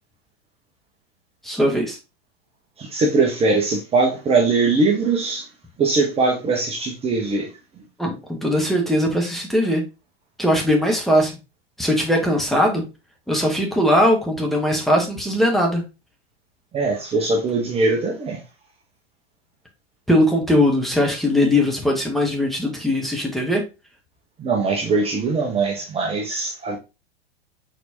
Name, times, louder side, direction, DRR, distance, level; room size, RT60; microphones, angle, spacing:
voice 1, 1.4-2.0 8.0-9.8 10.4-11.3 11.8-12.8 13.3-15.8 20.1-23.6, left 1 dB, ahead, 1.2 m, -20 dB
voice 2, 2.8-5.5 5.8-7.8 16.7-18.4 24.4-26.8, right 3 dB, 20° right, 0.9 m, -21 dB
4.4 x 4.1 x 2.8 m
figure-of-eight pair, 100°, 31 cm